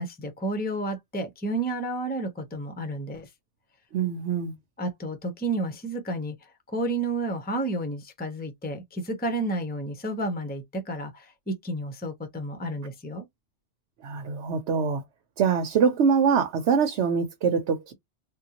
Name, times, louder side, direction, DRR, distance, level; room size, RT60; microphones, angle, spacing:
voice 1, 0.0-3.3 4.8-13.2, right 2 dB, 10° left, 0.6 m, -31 dB
voice 2, 3.9-4.5 14.0-15.0 15.4-17.9, right 6 dB, 90° right, 1.0 m, -24 dB
3.6 x 2.2 x 2.8 m
omnidirectional pair, 1.1 m